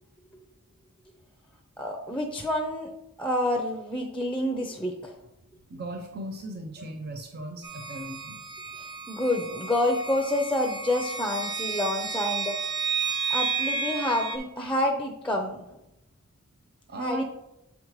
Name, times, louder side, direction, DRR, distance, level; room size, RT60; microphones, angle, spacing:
voice 1, 1.8-2.9 3.2-5.2 8.8-12.6 13.3-15.6 17.0-17.2, left 1 dB, 5° left, 2 dB, 0.6 m, -28 dB
voice 2, 5.7-8.4 16.9-17.2, right 1 dB, 45° right, 3 dB, 0.6 m, -37 dB
sound 1, 7.6-14.4, right 5 dB, 20° right, 1.0 m, -32 dB
8.0 x 5.2 x 3.1 m, 0.91 s
head